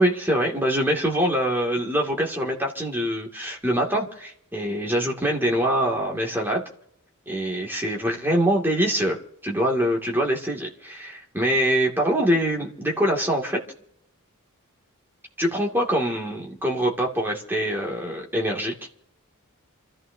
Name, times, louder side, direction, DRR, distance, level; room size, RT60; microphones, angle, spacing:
voice 1, 0.0-6.6 7.3-9.2 9.4-13.6 15.4-18.7, equal, 10° right, -1 dB, 2.2 m, -24 dB
28.5 x 14.0 x 2.7 m, 0.73 s
head